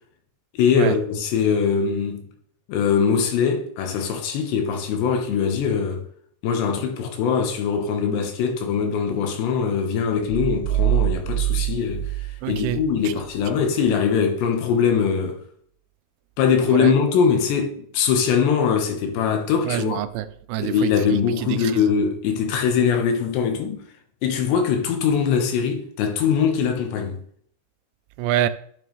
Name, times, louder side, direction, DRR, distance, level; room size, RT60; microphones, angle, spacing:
voice 1, 0.6-2.2 2.7-6.0 6.4-15.4 16.4-20.0 20.6-23.8 24.2-27.2, left 6 dB, 80° left, 3.3 m, -22 dB
sound 1, 10.3-12.9, right 15 dB, 65° right, 3.0 m, -24 dB
voice 2, 12.4-12.8 13.1-13.2 16.7-16.9 19.7-21.2 21.5-21.8 28.2-28.5, right 12 dB, 85° right, 2.7 m, -26 dB
10.5 x 6.8 x 3.1 m
omnidirectional pair, 5.0 m